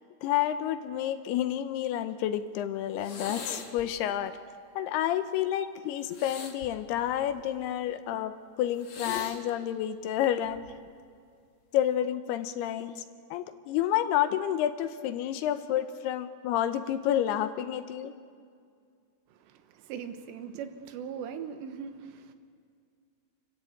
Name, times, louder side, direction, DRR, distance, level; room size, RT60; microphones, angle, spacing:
voice 1, 0.2-4.4 4.8-10.6 11.7-13.0 13.3-18.1, left 11 dB, 80° left, 11 dB, 2.7 m, -29 dB
sound 1, 3.0-3.9 6.1-7.6 8.8-9.4 10.5-10.8, left 5 dB, 55° left, 1.6 m, -41 dB
voice 2, 19.3-22.3, right 7 dB, 90° right, 8 dB, 3.4 m, -40 dB
29.5 x 13.5 x 8.5 m, 2.2 s
omnidirectional pair, 4.9 m